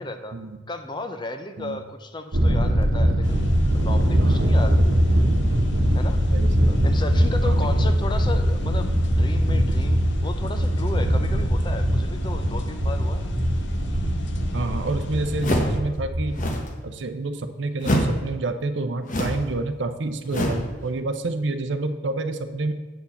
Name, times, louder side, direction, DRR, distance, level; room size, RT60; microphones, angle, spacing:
voice 1, 0.0-0.4 0.7-3.5 3.7-5.1 5.9-6.2 6.7-13.2, left 2 dB, 25° left, 7 dB, 0.6 m, -34 dB
Thunder, 2.3-16.5, equal, 85° right, 1.0 m, -21 dB
sound 1, 3.2-15.8, left 2 dB, 60° left, 0.8 m, -38 dB
voice 2, 4.2-4.5 6.3-6.8 7.4-7.9 14.5-16.4 16.8-22.7, right 2 dB, 60° right, 8 dB, 0.6 m, -29 dB
sound 2, 15.4-15.8 16.3-16.7 17.8-18.2 19.1-19.5 20.3-20.7, equal, 40° left, 1.1 m, -24 dB
8.0 x 4.6 x 7.0 m, 1.2 s
head